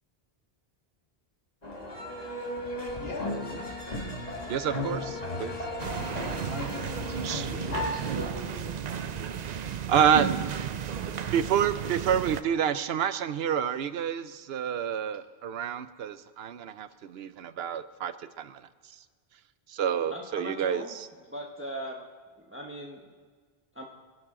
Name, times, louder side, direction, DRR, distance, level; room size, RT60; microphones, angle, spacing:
sound 1, 1.6-8.3, left 1 dB, 40° left, 1.7 m, -35 dB
voice 1, 3.0-3.7 6.3-9.9, left 3 dB, 75° left, 1 dB, 2.2 m, -42 dB
voice 2, 4.5-5.6 7.2-7.7 9.9-10.3 11.3-18.6 19.7-21.1, right 8 dB, 75° right, 14 dB, 0.9 m, -28 dB
sound 2, 5.8-12.4, right 8 dB, 50° right, 0.5 m, -33 dB
voice 3, 20.1-20.9 21.3-22.0 22.4-23.0 23.7-23.9, equal, 15° right, 0 dB, 1.0 m, -39 dB
23.0 x 11.0 x 3.7 m, 1.5 s
omnidirectional pair, 1.1 m